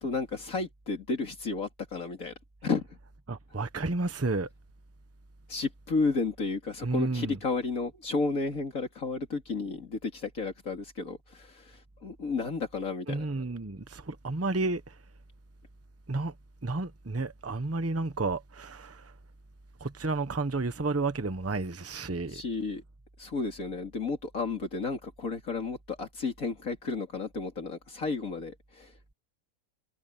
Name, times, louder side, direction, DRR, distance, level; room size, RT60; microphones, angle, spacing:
voice 1, 0.0-2.3 2.6-2.9 5.5-13.3 22.3-22.8 23.2-28.9, left 4 dB, 65° left, 3.2 m, -32 dB
voice 2, 3.3-4.5 6.8-7.4 13.1-14.8 16.1-16.3 16.6-19.1 19.8-22.4, right 3 dB, 10° right, 0.9 m, -31 dB
omnidirectional pair, 1.5 m